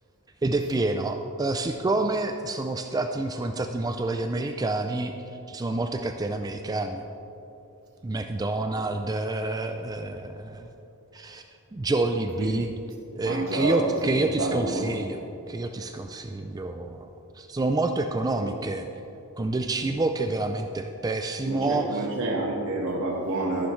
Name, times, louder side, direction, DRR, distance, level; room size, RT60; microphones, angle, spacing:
voice 1, 0.4-5.1 5.5-7.0 8.0-10.7 11.1-11.4 11.7-12.7 13.1-15.2 15.5-17.1 17.3-18.8 19.4-22.0, right 2 dB, 15° right, 6 dB, 0.3 m, -28 dB
voice 2, 13.2-14.9 18.4-18.5 21.4-23.7, right 2 dB, 60° right, -4 dB, 1.3 m, -28 dB
13.0 x 11.5 x 3.2 m, 2.9 s
head